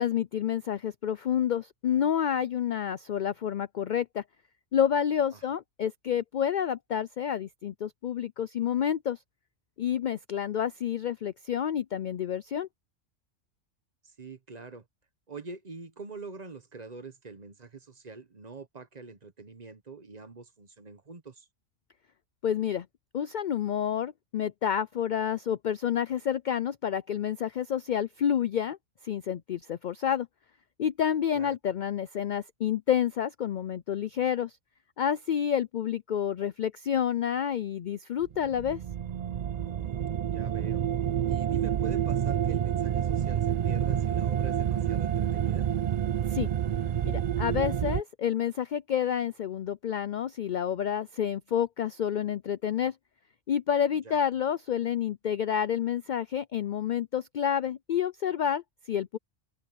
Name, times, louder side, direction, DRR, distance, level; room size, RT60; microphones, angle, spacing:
voice 1, 0.0-4.2 4.7-9.2 9.8-12.7 22.4-22.9 23.1-28.8 29.0-30.3 30.8-34.6 35.0-38.8 46.3-46.5 47.0-53.0 53.5-59.2, left 9 dB, 65° left, 0.4 m, -29 dB
voice 2, 14.0-14.9 15.3-21.5 31.3-31.6 40.3-40.8 41.3-45.7 54.0-54.2, right 4 dB, 35° right, 1.1 m, -44 dB
sound 1, 38.2-48.0, right 10 dB, 75° right, 0.3 m, -28 dB
open air
omnidirectional pair, 1.3 m